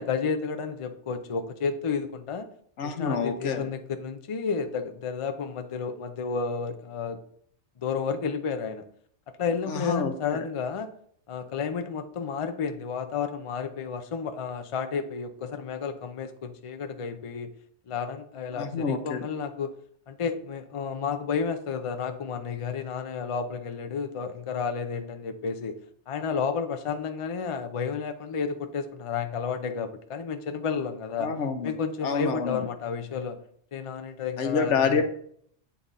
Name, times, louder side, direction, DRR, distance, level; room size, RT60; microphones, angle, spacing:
voice 1, 0.0-2.5 2.8-7.2 7.8-8.8 9.4-10.9 11.3-17.5 17.9-19.7 20.1-25.8 26.1-31.3 31.6-33.4 33.7-35.0, left 6 dB, 40° left, 8 dB, 0.5 m, -31 dB
voice 2, 2.8-3.7 9.7-10.4 18.6-19.2 31.2-31.7 32.0-32.6 34.4-35.0, left 5 dB, 85° left, 8 dB, 1.1 m, -27 dB
8.4 x 3.8 x 4.1 m, 0.63 s
omnidirectional pair, 1.2 m